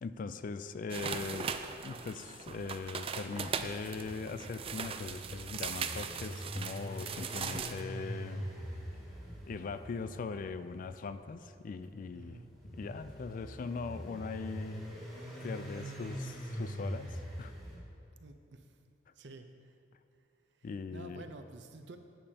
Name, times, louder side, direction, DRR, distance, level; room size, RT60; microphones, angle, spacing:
voice 1, 0.0-1.5 1.8-8.5 9.5-12.4 12.6-14.9 15.4-17.5 20.6-21.2, left 4 dB, 50° left, 12 dB, 0.3 m, -40 dB
sound 1, 0.9-7.8, right 6 dB, 30° right, 0.4 m, -39 dB
sound 2, 3.6-17.8, equal, ahead, 2.3 m, -44 dB
voice 2, 12.1-12.5 18.2-18.8 19.2-19.7 20.5-22.0, right 3 dB, 70° right, 7 dB, 0.6 m, -51 dB
11.5 x 8.9 x 2.9 m, 2.6 s
head